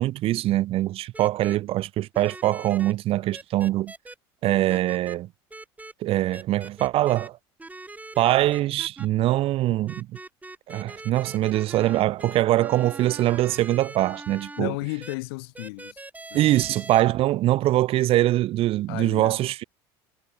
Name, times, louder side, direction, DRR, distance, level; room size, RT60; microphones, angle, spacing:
voice 1, 0.0-3.9 4.4-5.3 6.0-7.4 8.2-10.1 10.7-14.7 16.3-19.6, right 15 dB, 50° right, 0.5 m, -23 dB
sound 1, 1.1-1.6 2.1-2.9 3.3-4.1 4.7-5.2 5.5-5.9 6.3-7.3 7.6-9.1 9.9-14.6 15.0-15.1 15.5-17.0, right 2 dB, 10° right, 6.6 m, -42 dB
voice 2, 14.6-16.0 16.3-16.5 18.9-19.4, left 26 dB, 75° left, 5.2 m, -34 dB
hypercardioid pair, 85°, 13 cm